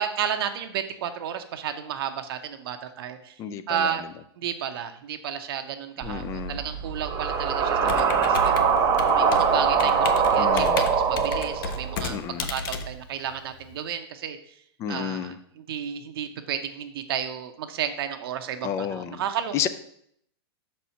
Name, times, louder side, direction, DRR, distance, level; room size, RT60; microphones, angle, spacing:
voice 1, 0.0-3.3 3.7-4.0 4.4-8.5 9.1-14.4 14.9-19.6, right 9 dB, 65° right, 7 dB, 0.7 m, -32 dB
voice 2, 3.4-4.0 6.0-6.6 7.8-8.3 10.4-10.9 12.1-12.5 14.8-15.4 18.6-19.2 19.5-19.7, left 9 dB, 20° left, 12 dB, 0.4 m, -32 dB
sound 1, 6.0-12.1, right 6 dB, 25° right, 1.0 m, -23 dB
Computer keyboard, 7.9-13.8, left 4 dB, 60° left, 0.7 m, -34 dB
6.1 x 4.3 x 5.6 m, 0.70 s
hypercardioid pair, 150°, 14 cm